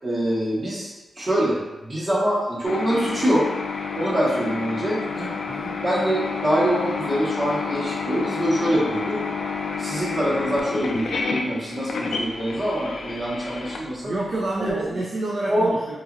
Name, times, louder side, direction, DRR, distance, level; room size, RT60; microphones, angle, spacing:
voice 1, 0.0-3.4 3.9-5.2 5.8-9.2 9.8-14.1 14.6-14.8 15.5-15.7, right 1 dB, 35° right, -7 dB, 1.1 m, -24 dB
sound 1, 2.6-14.7, left 5 dB, 75° left, 0.3 m, -30 dB
voice 2, 5.0-5.8 14.0-16.0, right 2 dB, 55° right, -5 dB, 0.4 m, -29 dB
2.9 x 2.5 x 2.5 m, 1.1 s
wide cardioid pair, 105°, 0 cm